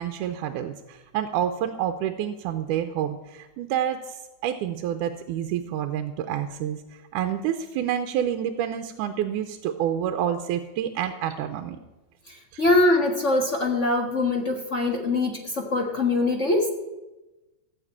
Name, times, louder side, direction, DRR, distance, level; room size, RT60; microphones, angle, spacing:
voice 1, 0.0-11.8 12.5-12.6, right 10 dB, 85° right, 7 dB, 2.2 m, -28 dB
voice 2, 12.3-16.7, left 2 dB, 45° left, 1 dB, 0.9 m, -23 dB
16.0 x 6.6 x 8.6 m, 1.1 s
omnidirectional pair, 3.6 m